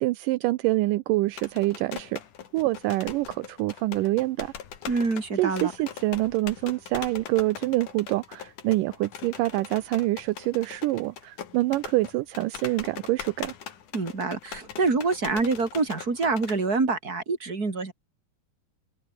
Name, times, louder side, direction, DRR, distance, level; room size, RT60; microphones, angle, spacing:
voice 1, 0.0-2.2 2.5-4.5 5.4-13.5, right 18 dB, 80° right, 2.3 m, -26 dB
sound 1, 1.3-16.6, left 8 dB, 65° left, 3.8 m, -41 dB
voice 2, 4.9-5.7 13.9-17.9, right 4 dB, 25° right, 4.3 m, -26 dB
open air
omnidirectional pair, 3.9 m